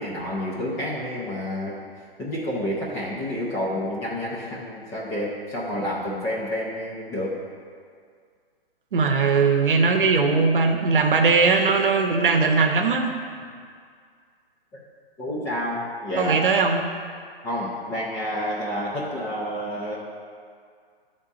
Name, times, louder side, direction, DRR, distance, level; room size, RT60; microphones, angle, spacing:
voice 1, 0.0-1.7 2.2-7.4 14.7-14.8 15.2-16.6 17.4-20.0, equal, 10° left, -6 dB, 0.4 m, -29 dB
voice 2, 8.9-13.1 16.2-16.8, right 4 dB, 60° right, 4 dB, 0.8 m, -20 dB
10.5 x 3.7 x 4.0 m, 2.1 s
figure-of-eight pair, 140°, 29 cm